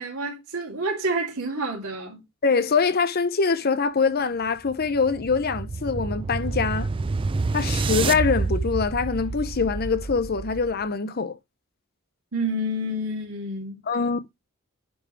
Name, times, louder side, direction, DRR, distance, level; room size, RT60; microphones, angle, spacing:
voice 1, 0.0-2.2 12.3-13.8, right 1 dB, 80° right, 2.7 m, -29 dB
voice 2, 2.4-6.9 7.5-11.4 13.9-14.2, left 5 dB, 45° left, 0.6 m, -24 dB
sound 1, 4.5-10.8, right 3 dB, 25° right, 0.3 m, -28 dB
10.5 x 3.6 x 4.6 m
head